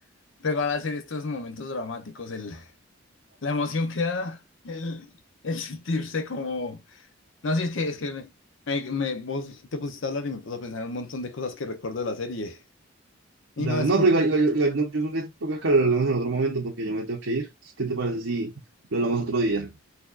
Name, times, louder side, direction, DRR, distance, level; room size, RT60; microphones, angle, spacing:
voice 1, 0.4-2.7 3.4-5.1 5.4-7.0 7.4-8.3 8.7-12.6 13.6-14.1, left 3 dB, 70° left, 0.8 m, -30 dB
voice 2, 13.6-18.5 18.9-19.7, right 3 dB, 85° right, 0.9 m, -24 dB
4.1 x 2.8 x 2.4 m
head